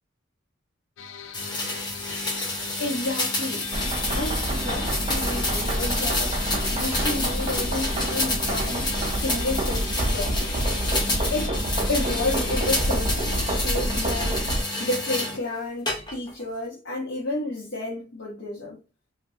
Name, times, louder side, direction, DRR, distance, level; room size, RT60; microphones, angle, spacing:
sound 1, 1.0-12.9, left 7 dB, 80° left, 0.4 m, -40 dB
sound 2, 1.3-15.4 15.9-16.4, left 2 dB, 20° left, 0.7 m, -29 dB
voice 1, 2.8-3.8 4.1-10.8 11.3-11.6 11.9-14.5 14.8-18.8, left 2 dB, 65° left, 1.0 m, -31 dB
sound 3, 3.7-14.6, right 1 dB, 30° right, 0.5 m, -28 dB
2.7 x 2.6 x 2.3 m
head